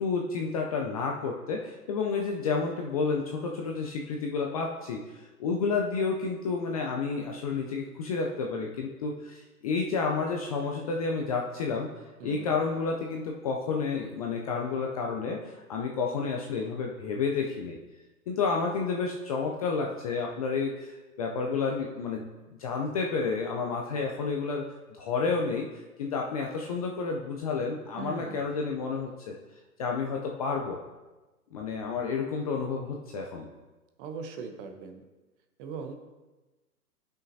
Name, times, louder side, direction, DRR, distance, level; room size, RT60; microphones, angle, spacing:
voice 1, 0.0-11.9 12.2-17.8 18.3-22.3 22.6-24.7 24.9-29.3 29.8-30.8 31.5-33.5, left 4 dB, 25° left, 0 dB, 0.4 m, -30 dB
voice 2, 12.2-12.6 28.0-28.5 34.0-35.0 35.6-36.0, right 5 dB, 35° right, 6 dB, 0.9 m, -39 dB
11.0 x 5.8 x 2.7 m, 1.2 s
hypercardioid pair, 125°, 46 cm